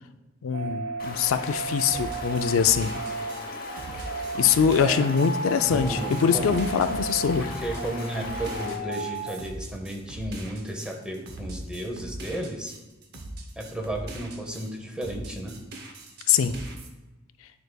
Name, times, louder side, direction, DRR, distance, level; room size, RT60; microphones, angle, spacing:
voice 1, 0.4-2.9 4.4-7.5 16.3-16.5, left 7 dB, 75° left, 10 dB, 0.4 m, -23 dB
sound 1, 0.5-9.4, right 2 dB, 65° right, 1.2 m, -35 dB
Stream, 1.0-8.8, left 3 dB, 45° left, 0.9 m, -40 dB
sound 2, 1.9-14.7 15.0-16.9, right 1 dB, 50° right, 0.7 m, -40 dB
voice 2, 4.7-5.1 5.7-6.5 7.4-12.7 13.6-15.6, right 1 dB, 5° right, 2 dB, 0.7 m, -33 dB
9.2 x 4.6 x 2.3 m, 1.1 s
head